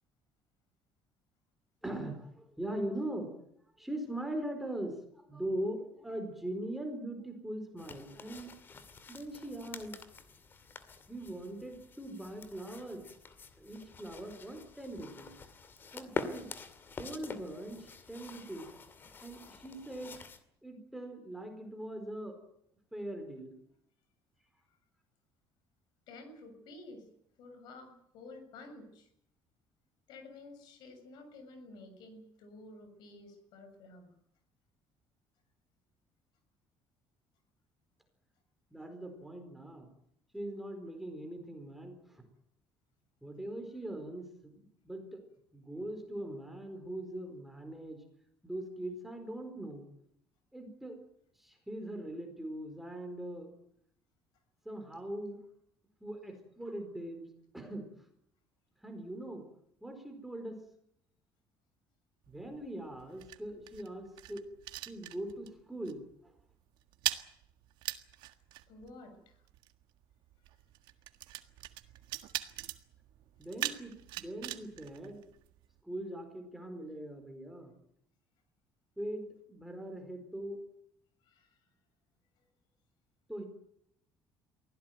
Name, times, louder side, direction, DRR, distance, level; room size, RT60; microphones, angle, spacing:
voice 1, 1.8-3.3 3.8-8.5 9.1-9.9 11.1-13.0 13.6-15.3 15.9-16.5 17.0-18.7 19.2-20.2 20.6-22.4 22.9-23.5 38.7-39.9 40.3-42.2 43.2-45.2 45.5-48.0 48.4-49.9 50.5-51.0 51.4-53.5 54.6-55.4 56.0-57.3 57.5-58.1 58.8-59.4 59.8-60.6 62.3-64.4 64.9-66.3 73.4-75.2 75.8-77.7 79.0-79.2 79.5-80.6 83.3-83.4, right 1 dB, 5° right, 5 dB, 4.4 m, -41 dB
sound 1, 7.8-20.4, left 4 dB, 25° left, 2.4 m, -46 dB
voice 2, 26.1-27.1 27.4-29.1 30.1-34.2 68.7-69.4 72.2-72.5 81.2-81.5, left 2 dB, 65° left, 8 dB, 7.2 m, -52 dB
sound 2, 62.2-65.6 65.9-66.1 66.4-75.8, right 15 dB, 75° right, 1.7 m, -42 dB
24.0 x 16.5 x 9.3 m, 0.73 s
cardioid pair, 165°, 8 cm